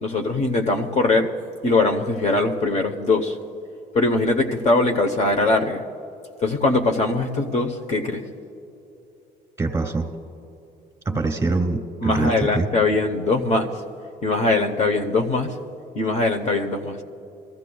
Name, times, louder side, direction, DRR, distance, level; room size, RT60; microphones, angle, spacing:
voice 1, 0.0-1.3 1.6-3.4 3.9-5.8 6.4-8.2 11.1-11.2 12.0-13.7 14.2-15.6 15.9-17.0, left 2 dB, 40° left, 4 dB, 1.0 m, -21 dB
voice 2, 9.6-10.0 11.0-12.7, right 3 dB, 15° right, 4 dB, 1.6 m, -24 dB
25.0 x 15.0 x 2.3 m, 2.8 s
cardioid pair, 110°, 17 cm